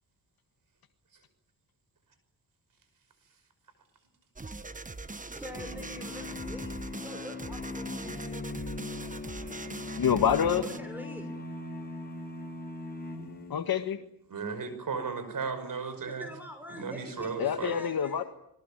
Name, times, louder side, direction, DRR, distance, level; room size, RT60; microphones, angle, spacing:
sound 1, 4.4-10.8, right 3 dB, 20° right, 1.3 m, -41 dB
voice 1, 5.3-6.7 7.0-8.7 10.6-11.3 16.0-18.3, left 1 dB, 5° right, 5 dB, 6.0 m, -45 dB
sound 2, 5.5-13.8, left 2 dB, 25° left, 6.6 m, -40 dB
voice 2, 9.2-9.8 14.3-16.3 16.7-17.7, right 5 dB, 60° right, 10 dB, 5.8 m, -36 dB
voice 3, 10.0-10.6 13.5-14.0 17.4-18.2, left 8 dB, 75° left, 8 dB, 1.6 m, -26 dB
28.0 x 22.0 x 8.8 m, 0.75 s
cardioid pair, 85°, 37 cm